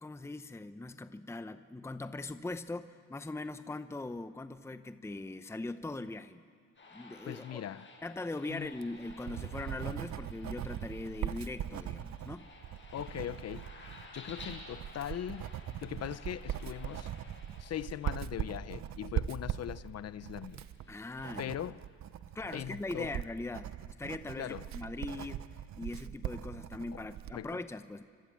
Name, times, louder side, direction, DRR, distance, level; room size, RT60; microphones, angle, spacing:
voice 1, 0.0-6.4 6.9-7.6 8.0-12.5 20.9-21.6 22.3-23.7 24.0-28.0, left 2 dB, 10° left, 0.8 m, -41 dB
sound 1, 6.7-19.0 19.6-21.5, left 3 dB, 40° left, 7.2 m, -55 dB
voice 2, 7.3-7.9 8.5-8.7 12.9-13.7 14.1-15.5 15.8-17.1 17.6-20.6 21.4-21.8 22.5-23.1 24.4-24.7 26.9-27.0 27.3-27.6, left 10 dB, 55° left, 0.8 m, -40 dB
Writing, 8.6-27.4, right 10 dB, 65° right, 1.0 m, -40 dB
29.0 x 25.0 x 7.5 m
cardioid pair, 90°, 30 cm